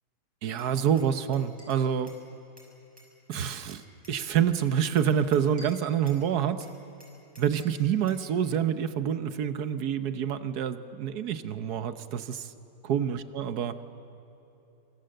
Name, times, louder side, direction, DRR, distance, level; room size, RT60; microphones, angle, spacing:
voice 1, 0.4-2.1 3.3-3.8 4.1-6.7 7.4-12.5 12.8-13.7, right 8 dB, 70° right, 11 dB, 1.5 m, -27 dB
Glass, 0.6-2.3 2.6-4.2 4.6-6.3 6.6-8.3, equal, 5° right, 6.0 m, -53 dB
26.5 x 25.0 x 7.8 m, 3.0 s
omnidirectional pair, 1.8 m